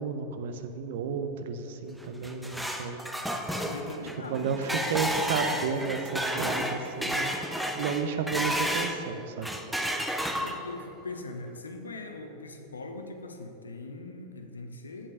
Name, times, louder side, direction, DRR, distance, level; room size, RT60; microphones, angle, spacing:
voice 1, 0.0-3.0 4.3-9.5, right 5 dB, 55° right, 8 dB, 0.7 m, -32 dB
sound 1, 2.0-9.0 9.4-10.8, equal, ahead, 0.6 m, -31 dB
voice 2, 3.6-4.8 10.4-15.1, left 2 dB, 75° left, 5 dB, 0.8 m, -41 dB
8.5 x 5.3 x 6.4 m, 2.9 s
figure-of-eight pair, 90°, 0 cm